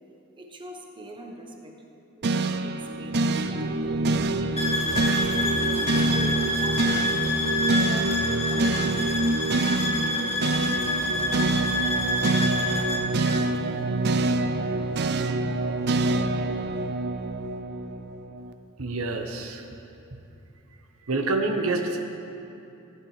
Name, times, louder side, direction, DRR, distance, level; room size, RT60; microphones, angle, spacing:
voice 1, 0.4-1.8 2.2-4.8 5.4-7.2 7.5-9.1, right 1 dB, 25° right, 2 dB, 1.1 m, -42 dB
sound 1, 2.2-18.5, right 2 dB, 50° right, 0.5 m, -26 dB
sound 2, 4.6-13.1, left 2 dB, 30° left, 1.6 m, -28 dB
voice 2, 18.8-19.6 21.1-22.2, right 3 dB, 75° right, 4 dB, 1.0 m, -27 dB
15.5 x 10.5 x 4.9 m, 2.8 s
head